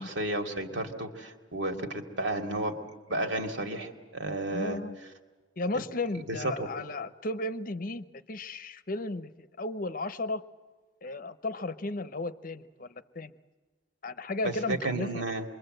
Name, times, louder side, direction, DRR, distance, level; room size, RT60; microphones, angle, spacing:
voice 1, 0.0-2.7 3.1-4.8 6.3-6.7 14.4-15.4, right 1 dB, 65° right, 4 dB, 2.5 m, -32 dB
voice 2, 4.5-5.0 5.6-10.4 11.0-13.3 14.0-15.2, left 2 dB, 45° left, 12 dB, 0.8 m, -34 dB
27.0 x 23.0 x 7.9 m, 1.4 s
head